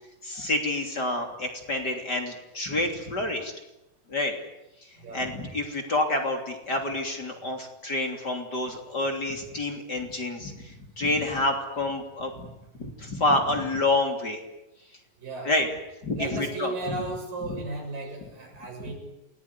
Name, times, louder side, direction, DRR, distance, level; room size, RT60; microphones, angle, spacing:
voice 1, 0.2-3.5 4.1-4.4 4.8-12.5 12.8-14.4 15.4-15.7 16.0-17.0 17.4-17.6, left 2 dB, 30° left, 3 dB, 3.5 m, -28 dB
voice 2, 5.0-5.3 15.2-15.5 16.1-18.9, right 2 dB, 85° right, 2 dB, 8.8 m, -35 dB
29.5 x 20.5 x 9.8 m, 0.93 s
omnidirectional pair, 3.8 m